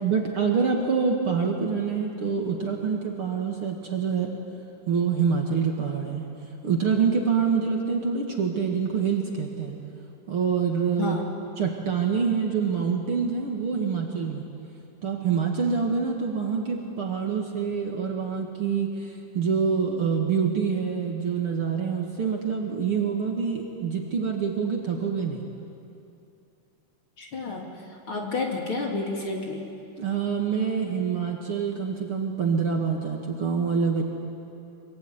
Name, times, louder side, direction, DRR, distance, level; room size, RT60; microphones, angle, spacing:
voice 1, 0.0-4.3 4.9-6.3 6.6-9.7 10.3-11.2 11.6-14.4 15.0-25.4 30.0-34.0, right 6 dB, 45° right, 1 dB, 2.5 m, -26 dB
voice 2, 27.2-27.7 28.1-29.7, left 3 dB, 40° left, 0 dB, 3.3 m, -30 dB
24.5 x 24.5 x 9.6 m, 2.6 s
omnidirectional pair, 3.8 m